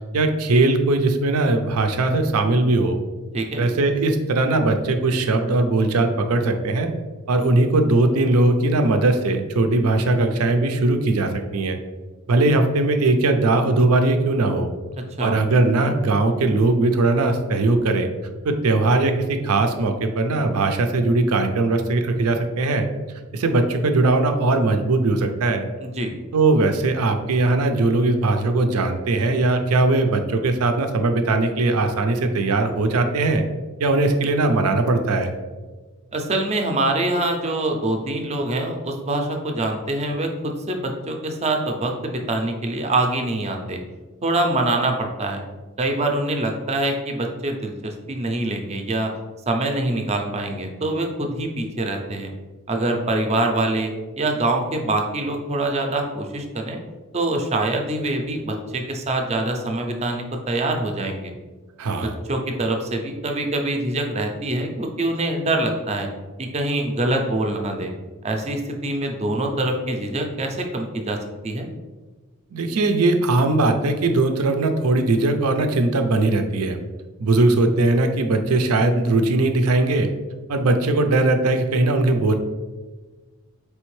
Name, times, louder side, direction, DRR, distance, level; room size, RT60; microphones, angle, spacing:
voice 1, 0.1-3.0 3.6-6.9 7.3-11.8 12.3-14.7 15.2-18.1 18.4-22.9 23.3-25.7 26.3-33.4 33.8-35.3 61.8-62.2 72.5-76.8 77.2-80.1 80.5-82.3, right 2 dB, 80° right, 6 dB, 0.5 m, -20 dB
voice 2, 3.3-3.6 15.2-15.4 25.8-26.1 36.1-43.8 44.2-45.4 45.8-49.1 49.5-52.3 52.7-53.9 54.2-56.8 57.1-61.3 62.0-66.1 66.4-67.9 68.2-71.2 71.4-71.7, right 2 dB, 30° right, 3 dB, 0.5 m, -24 dB
4.3 x 3.3 x 3.2 m, 1.3 s
head